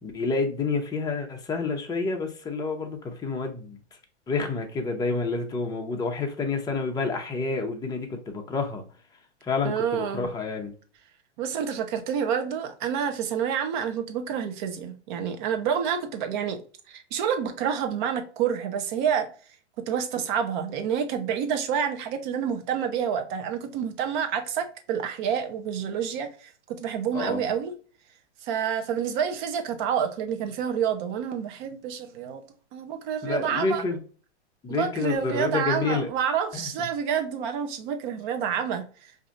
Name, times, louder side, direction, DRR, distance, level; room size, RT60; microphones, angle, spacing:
voice 1, 0.0-3.8 4.3-8.9 9.5-10.7 27.1-27.4 33.2-34.0 34.6-36.1 36.5-36.7, left 4 dB, 10° left, 0.7 m, -29 dB
voice 2, 9.6-10.3 11.4-16.6 16.9-19.3 19.9-27.7 28.4-32.4 32.7-33.8 34.7-38.8, right 8 dB, 40° right, 0.8 m, -28 dB
4.8 x 2.7 x 2.5 m
hypercardioid pair, 120°, 35 cm